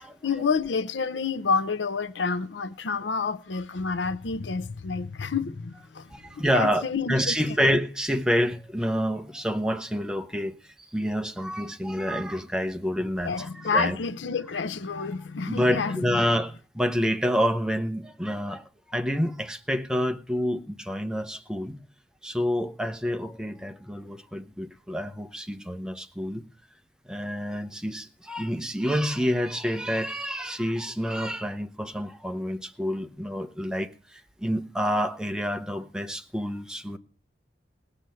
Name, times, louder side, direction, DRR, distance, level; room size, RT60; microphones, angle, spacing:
voice 1, 0.0-6.1 6.4-7.4 13.2-16.2, left 5 dB, 80° left, 0.6 m, -29 dB
voice 2, 6.1-10.6 10.9-14.0 15.0-15.1 15.5-18.6 18.9-21.8 22.2-26.4 27.1-33.9 34.4-37.0, equal, 5° right, 0.8 m, -28 dB
18.0 x 6.9 x 7.6 m
head